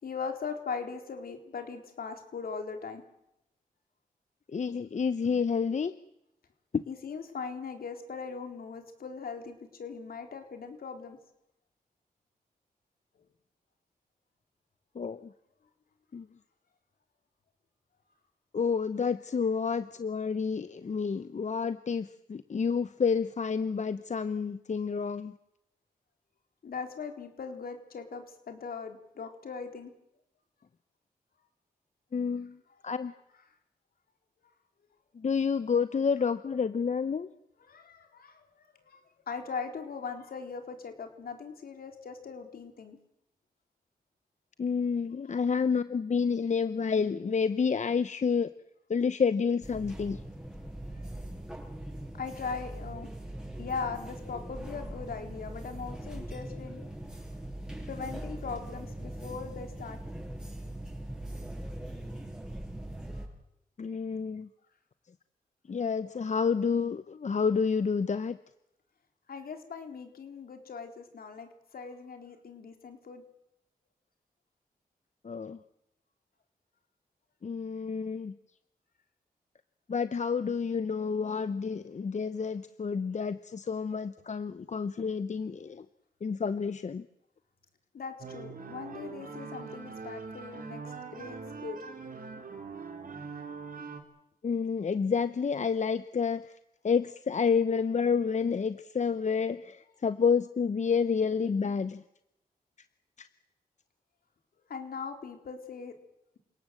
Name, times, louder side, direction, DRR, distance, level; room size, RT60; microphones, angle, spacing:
voice 1, 0.0-3.0 6.9-11.2 26.6-29.9 32.7-32.8 37.6-39.0 39.3-43.0 52.2-53.1 53.6-56.8 57.9-60.0 63.2-63.3 69.3-73.2 87.9-90.8 91.1-91.8 104.7-105.9, left 5 dB, 75° left, 5 dB, 3.7 m, -40 dB
voice 2, 4.5-5.9 14.9-15.3 16.1-16.2 18.5-25.3 32.1-32.6 32.8-33.1 35.2-37.3 44.6-48.5 48.9-50.2 63.8-64.5 65.7-68.4 75.2-75.6 77.4-78.3 79.9-85.8 86.2-87.0 94.4-96.4 96.8-102.0 103.2-103.3, left 5 dB, 50° left, 12 dB, 0.9 m, -29 dB
sound 1, 49.6-63.3, right 1 dB, 5° right, 7.8 m, -41 dB
sound 2, 88.2-94.0, right 5 dB, 65° right, 3.7 m, -42 dB
28.0 x 18.0 x 7.7 m, 0.86 s
cardioid pair, 60°, 15 cm